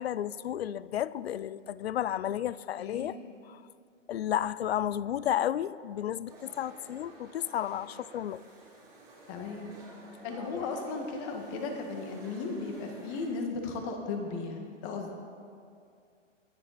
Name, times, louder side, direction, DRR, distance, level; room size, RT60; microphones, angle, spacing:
voice 1, 0.0-3.2 3.5-3.6 4.1-8.4, left 11 dB, 55° left, 0.5 m, -32 dB
voice 2, 2.8-3.1 9.3-9.7 10.2-15.1, left 4 dB, 25° left, 1.7 m, -36 dB
sound 1, 6.3-13.3, right 2 dB, 10° right, 2.9 m, -52 dB
22.5 x 10.5 x 4.2 m
hypercardioid pair, 160°, 37 cm